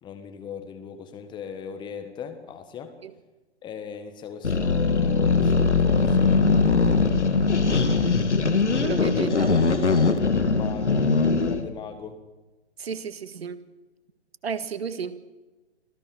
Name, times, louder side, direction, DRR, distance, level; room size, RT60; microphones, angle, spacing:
voice 1, 0.0-2.9 3.6-7.7 9.9-12.2, left 7 dB, 15° left, 9 dB, 1.6 m, -39 dB
sound 1, 4.4-11.6, left 4 dB, 80° left, 2.4 m, -21 dB
voice 2, 8.8-9.6 12.8-13.6 14.4-15.2, right 6 dB, 60° right, 13 dB, 1.8 m, -32 dB
26.0 x 16.0 x 6.3 m, 1.2 s
figure-of-eight pair, 140°, 34 cm